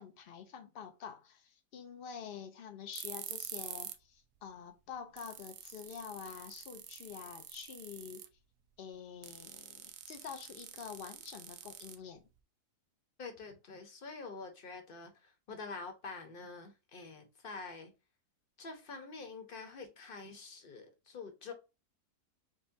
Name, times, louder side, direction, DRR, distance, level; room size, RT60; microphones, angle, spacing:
voice 1, 0.0-8.2 8.8-12.2, left 7 dB, 85° left, 0.5 m, -47 dB
Electric Sparker, 2.9-4.1 4.4-4.5 4.9-5.0 5.2-8.4 9.2-12.4, right 11 dB, 70° right, 0.9 m, -47 dB
voice 2, 13.2-17.9 18.6-21.5, left 4 dB, 40° left, 0.9 m, -46 dB
6.5 x 2.2 x 2.6 m
omnidirectional pair, 1.7 m